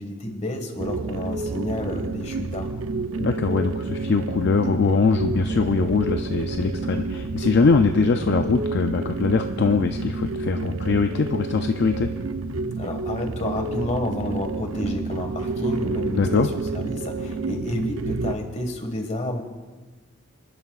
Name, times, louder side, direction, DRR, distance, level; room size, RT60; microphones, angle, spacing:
voice 1, 0.0-2.8 12.8-19.4, left 1 dB, 35° left, 3 dB, 1.7 m, -30 dB
sound 1, 0.8-18.3, right 3 dB, 75° right, 0.6 m, -29 dB
voice 2, 3.2-12.1 16.2-16.5, left 4 dB, 55° left, 6 dB, 0.4 m, -22 dB
sound 2, 5.2-14.9, equal, 10° right, 0.6 m, -41 dB
26.0 x 11.0 x 2.4 m, 1.3 s
head